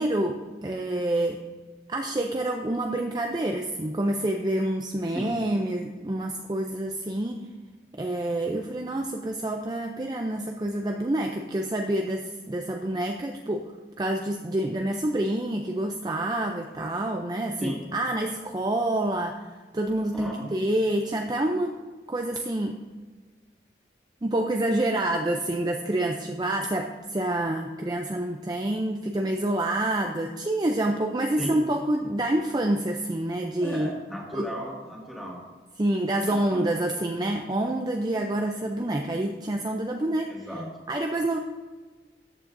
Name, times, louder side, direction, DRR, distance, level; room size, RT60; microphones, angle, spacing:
voice 1, 0.0-1.4 1.9-7.5 7.9-13.7 14.0-21.8 22.1-22.8 24.2-33.9 34.3-34.5 35.8-40.5 40.9-41.4, right 1 dB, 25° right, 3 dB, 0.4 m, -27 dB
voice 2, 20.1-20.5 31.4-31.5 33.6-35.4 36.3-36.6 40.3-40.6, equal, ahead, -4 dB, 2.0 m, -35 dB
13.5 x 8.6 x 2.6 m, 1.4 s
head